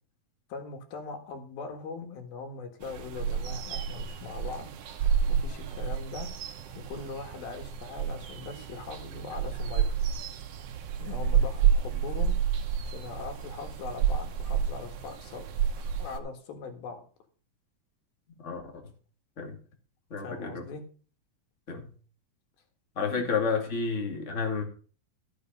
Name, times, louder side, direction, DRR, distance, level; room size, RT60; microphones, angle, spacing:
voice 1, 0.5-4.7 5.0-6.3 6.8-10.0 11.0-12.4 12.9-15.5 15.8-17.0 20.2-20.8 23.2-23.3, left 4 dB, 90° left, 3.6 m, -41 dB
sound 1, 2.8-16.2, right 8 dB, 75° right, 1.4 m, -30 dB
voice 2, 20.1-20.6 21.7-21.9 23.0-24.6, left 5 dB, 25° left, 2.1 m, -30 dB
14.0 x 6.7 x 5.3 m
omnidirectional pair, 4.1 m